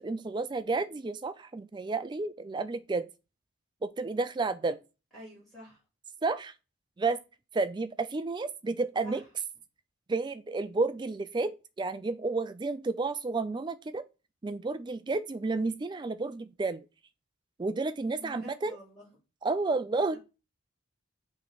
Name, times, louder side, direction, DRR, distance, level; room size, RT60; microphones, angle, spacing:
voice 1, 0.0-3.1 3.8-4.8 6.2-6.5 7.0-7.2 7.5-9.2 10.1-14.0 14.4-16.8 17.6-18.8 19.4-20.2, right 3 dB, 20° right, 0.3 m, -31 dB
voice 2, 5.1-5.8 9.0-9.3 18.2-19.1, equal, ahead, 3.4 m, -48 dB
6.1 x 3.1 x 4.9 m
head